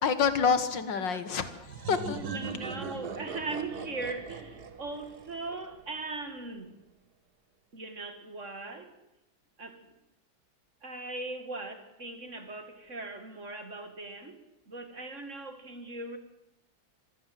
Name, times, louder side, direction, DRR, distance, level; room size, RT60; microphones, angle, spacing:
voice 1, 0.0-2.2, left 6 dB, 70° left, 12 dB, 2.1 m, -27 dB
sound 1, 1.7-6.2, right 5 dB, 55° right, 1.9 m, -41 dB
voice 2, 2.1-6.7 7.7-8.9 9.6-9.9 10.8-14.4 14.7-16.2, right 3 dB, 40° right, 9 dB, 2.1 m, -39 dB
25.0 x 16.0 x 7.7 m, 0.91 s
omnidirectional pair, 2.1 m